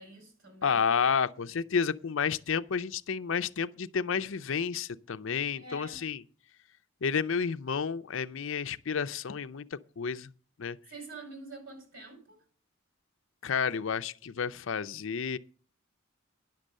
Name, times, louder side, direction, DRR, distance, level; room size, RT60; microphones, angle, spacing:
voice 1, 0.0-0.9 5.6-6.0 10.9-12.4, right 2 dB, 65° right, 5.2 m, -46 dB
voice 2, 0.6-6.2 7.0-9.7 10.0-10.3 10.6-10.8 13.4-15.4, left 6 dB, 65° left, 0.5 m, -30 dB
10.5 x 6.6 x 7.4 m
head